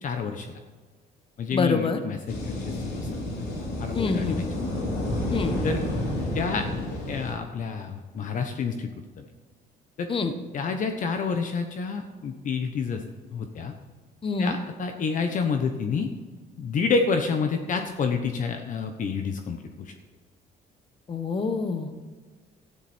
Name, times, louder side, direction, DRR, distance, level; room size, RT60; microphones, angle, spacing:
voice 1, 0.0-0.5 1.4-2.2 2.5-3.2 3.8-4.4 5.6-5.8 6.3-8.9 9.2-9.3 10.0-10.1 10.5-13.0 13.3-13.7 14.4-16.1 16.6-19.9, left 5 dB, 50° left, 6 dB, 1.1 m, -28 dB
voice 2, 1.5-2.0 3.9-4.4 5.3-5.5 10.1-10.3 14.2-14.6 21.1-21.9, left 4 dB, 30° left, 8 dB, 1.4 m, -26 dB
sound 1, 2.3-7.3, left 1 dB, 70° left, 4.0 m, -30 dB
13.0 x 11.0 x 4.5 m, 1.4 s
cardioid pair, 110°, 17 cm